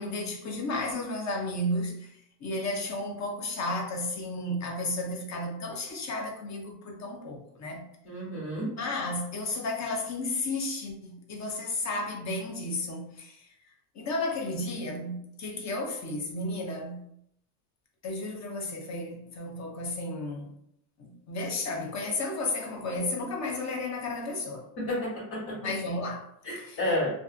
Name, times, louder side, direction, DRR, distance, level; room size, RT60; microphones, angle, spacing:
voice 1, 0.0-7.8 8.8-13.5 13.9-17.0 18.0-20.5 21.0-24.7 25.6-26.3 26.6-26.8, left 2 dB, 35° left, 0.7 m, -33 dB
voice 2, 8.0-8.7 24.8-25.6 26.4-27.1, left 1 dB, 60° left, 1.4 m, -31 dB
2.5 x 2.4 x 2.3 m
supercardioid pair, 95°, 48 cm